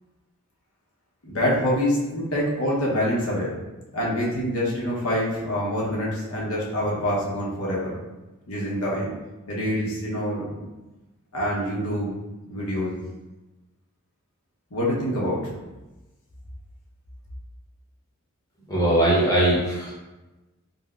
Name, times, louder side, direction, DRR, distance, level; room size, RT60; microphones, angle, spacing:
voice 1, 1.2-3.5 3.9-7.9 8.5-9.1 9.5-10.6 11.3-12.1 12.5-13.0 14.7-15.4, equal, 75° left, -5 dB, 0.9 m, -26 dB
voice 2, 18.7-19.9, right 1 dB, 15° left, -7 dB, 0.9 m, -20 dB
3.9 x 2.1 x 2.4 m, 1.1 s
head